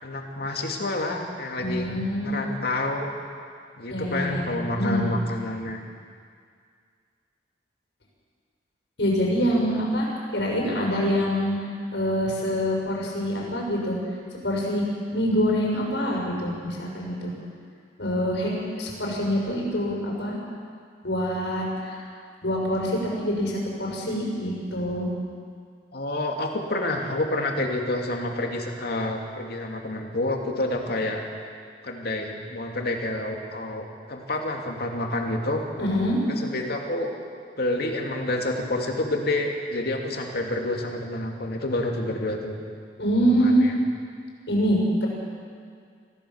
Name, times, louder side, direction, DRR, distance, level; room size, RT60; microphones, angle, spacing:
voice 1, 0.0-1.9 2.2-3.1 3.8-5.8 25.9-31.2 31.8-35.6 36.3-37.1 37.6-42.6 43.4-43.7, left 2 dB, 60° left, 1 dB, 2.7 m, -28 dB
voice 2, 1.6-2.4 3.9-4.5 4.8-5.0 9.0-10.1 10.3-11.6 11.9-14.0 14.3-14.8 15.1-17.3 18.0-20.4 21.0-22.1 22.4-25.1 35.8-36.2 43.0-43.6 44.5-45.1, equal, 80° left, -2 dB, 6.4 m, -25 dB
25.0 x 16.0 x 7.3 m, 2.1 s
head